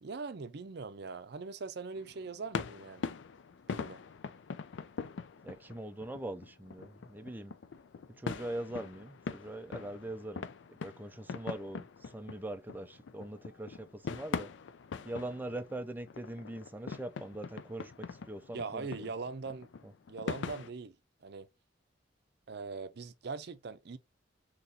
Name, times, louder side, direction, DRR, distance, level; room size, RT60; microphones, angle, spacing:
voice 1, 0.0-3.1 3.7-4.0 18.5-19.7 20.1-21.0 21.2-21.5 22.5-24.0, right 4 dB, 60° right, 0.5 m, -41 dB
sound 1, 1.9-20.7, left 5 dB, 70° left, 0.4 m, -42 dB
voice 2, 5.4-7.5 8.2-14.5 15.0-18.9 19.8-19.9, right 1 dB, 10° right, 0.4 m, -42 dB
3.9 x 2.9 x 2.6 m
head